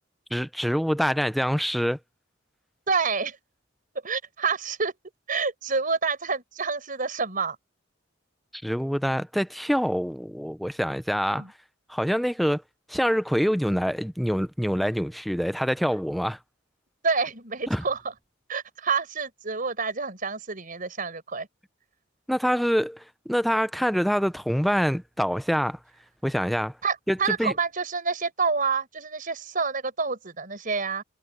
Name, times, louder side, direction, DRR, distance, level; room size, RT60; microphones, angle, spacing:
voice 1, 0.3-2.0 8.6-11.4 11.9-12.6 12.9-16.4 17.7-17.8 22.3-25.8 26.2-26.7 27.1-27.5, equal, ahead, 0.6 m, -25 dB
voice 2, 2.9-3.4 4.0-4.9 5.3-7.6 11.3-11.5 17.0-18.1 18.5-21.5 26.8-31.0, right 5 dB, 45° right, 5.1 m, -28 dB
head